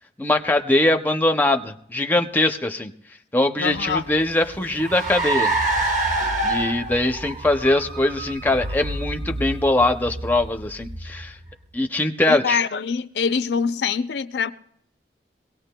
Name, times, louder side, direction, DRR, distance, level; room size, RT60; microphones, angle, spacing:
voice 1, 0.2-2.9 3.3-5.5 6.4-11.4 11.7-12.6, left 2 dB, 10° left, 0.5 m, -21 dB
voice 2, 3.6-4.1 12.3-14.5, left 6 dB, 70° left, 0.4 m, -24 dB
Car, 3.7-11.5, right 2 dB, 45° right, 1.0 m, -27 dB
22.5 x 17.5 x 2.2 m
head